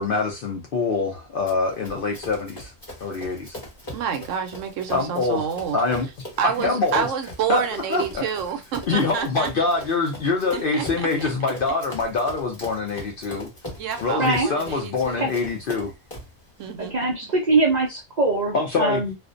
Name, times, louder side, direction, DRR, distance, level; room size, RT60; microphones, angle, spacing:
voice 1, 0.0-2.7 3.0-3.5 4.9-5.4 5.7-6.1 6.4-7.1 7.5-7.6 7.9-8.2 8.9-13.5 14.0-15.9 18.5-19.0, left 3 dB, 60° left, 0.6 m, -24 dB
Run, 1.5-16.4, left 1 dB, 20° left, 0.9 m, -41 dB
voice 2, 3.9-5.8 6.4-9.5 10.5-11.3 13.8-15.3 16.6-17.3, right 7 dB, 75° right, 0.9 m, -28 dB
voice 3, 14.2-14.5 15.2-15.3 16.8-19.1, right 2 dB, 55° right, 0.5 m, -22 dB
2.5 x 2.1 x 2.4 m
omnidirectional pair, 1.3 m